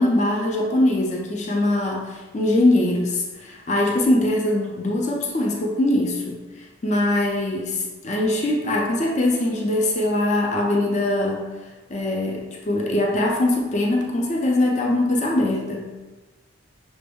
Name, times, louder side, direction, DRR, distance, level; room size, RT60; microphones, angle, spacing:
voice 1, 0.0-11.5 11.9-15.9, left 1 dB, 35° left, -1 dB, 0.4 m, -22 dB
5.9 x 2.0 x 3.4 m, 1.2 s
head